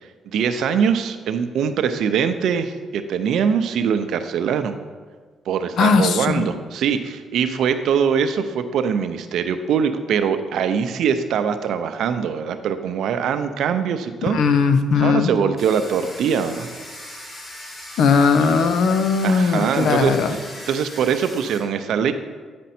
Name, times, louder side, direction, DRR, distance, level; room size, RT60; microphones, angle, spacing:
voice 1, 0.3-4.8 5.5-14.4 15.0-16.7 19.2-20.4 20.7-22.1, right 7 dB, 75° right, 9 dB, 0.5 m, -22 dB
voice 2, 5.8-6.5 14.3-15.3 18.0-20.3, left 5 dB, 70° left, 9 dB, 0.6 m, -18 dB
Domestic sounds home sounds, 15.6-21.6, left 1 dB, 35° left, 2.6 m, -38 dB
9.2 x 5.2 x 4.3 m, 1.5 s
cardioid pair, 90°, 0 cm